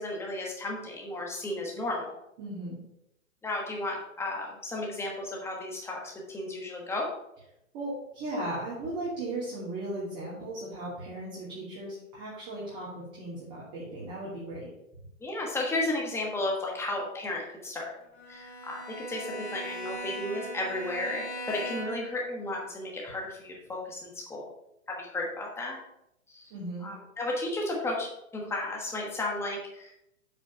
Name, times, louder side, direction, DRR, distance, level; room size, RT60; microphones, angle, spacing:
voice 1, 0.0-2.2 3.4-7.1 15.2-17.9 18.3-18.8 19.1-24.5 24.9-25.8 26.3-26.5 26.8-29.9, left 2 dB, 5° left, -2 dB, 1.3 m, -34 dB
voice 2, 2.4-2.8 7.7-14.7 26.5-26.9, right 1 dB, 25° right, -7 dB, 2.5 m, -36 dB
Bowed string instrument, 18.2-22.2, right 1 dB, 50° left, 3.2 m, -39 dB
7.9 x 4.1 x 5.4 m, 0.81 s
hypercardioid pair, 150°, 41 cm